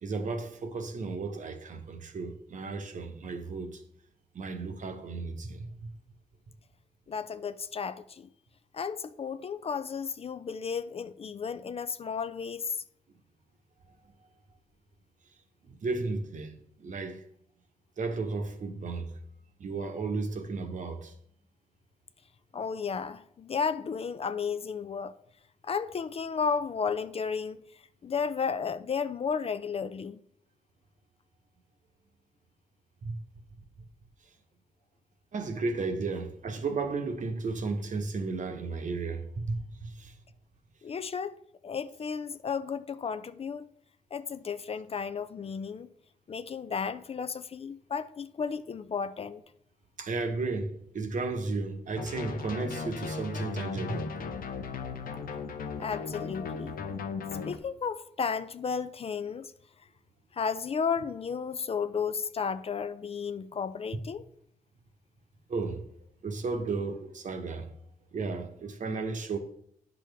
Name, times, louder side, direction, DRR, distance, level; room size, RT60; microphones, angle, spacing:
voice 1, 0.0-3.8 4.3-5.9 15.6-16.5 16.8-17.2 18.0-19.1 19.6-21.1 33.0-33.2 33.5-33.6 35.3-40.2 50.0-54.3 65.5-65.8 66.2-67.7 68.1-69.4, right 3 dB, 55° right, 1.1 m, -34 dB
voice 2, 7.1-8.3 8.7-12.8 22.5-25.1 25.6-27.6 28.0-30.2 40.8-41.4 41.6-43.7 44.1-45.9 46.3-49.4 55.8-56.8 57.5-59.5 60.3-64.2, left 6 dB, 40° left, 0.4 m, -33 dB
sound 1, 52.0-57.6, left 5 dB, 70° left, 0.8 m, -37 dB
10.0 x 6.2 x 3.4 m
wide cardioid pair, 120°, 16 cm